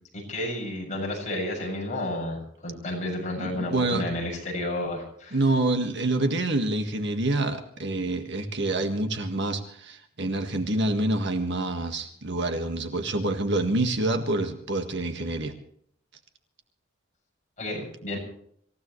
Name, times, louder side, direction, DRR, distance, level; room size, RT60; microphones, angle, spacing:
voice 1, 0.1-5.4 17.6-18.2, left 1 dB, 35° left, -2 dB, 7.1 m, -31 dB
voice 2, 3.4-4.0 5.3-15.5, right 2 dB, 60° right, 6 dB, 1.8 m, -27 dB
26.5 x 16.0 x 3.2 m, 0.65 s
head